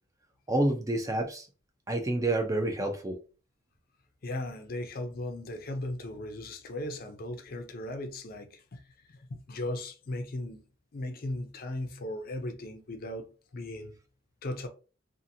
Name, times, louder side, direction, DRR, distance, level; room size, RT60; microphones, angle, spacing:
voice 1, 0.5-1.5 1.9-3.2, right 1 dB, 15° right, 0.3 m, -28 dB
voice 2, 4.2-10.6 10.9-14.0 14.4-14.7, left 1 dB, 45° left, 0.4 m, -37 dB
2.6 x 2.5 x 2.6 m
head